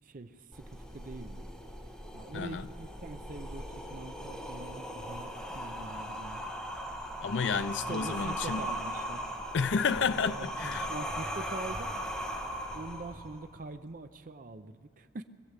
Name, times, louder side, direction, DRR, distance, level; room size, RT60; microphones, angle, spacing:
voice 1, 0.0-1.4 2.1-6.4 7.9-9.2 10.2-12.4 12.7-15.2, right 3 dB, 50° right, 0.6 m, -44 dB
sound 1, 0.5-13.5, equal, 5° left, 1.4 m, -39 dB
voice 2, 7.2-8.6 9.5-10.9, left 5 dB, 75° left, 0.5 m, -30 dB
21.5 x 14.5 x 8.2 m
head